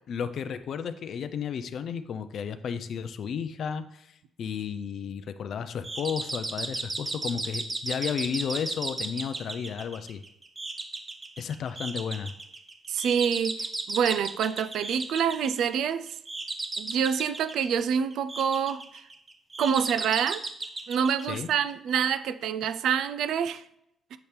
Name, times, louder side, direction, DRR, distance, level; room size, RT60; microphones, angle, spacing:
voice 1, 0.1-10.2 11.4-12.4 21.2-21.5, left 7 dB, 65° left, 11 dB, 0.4 m, -33 dB
sound 1, 5.8-21.9, right 2 dB, 25° right, 0.5 m, -36 dB
voice 2, 12.9-16.1 16.8-18.8 19.6-20.4 20.9-23.6, right 7 dB, 75° right, 13 dB, 0.3 m, -26 dB
6.9 x 4.3 x 3.2 m, 0.78 s
cardioid pair, 90°, 0 cm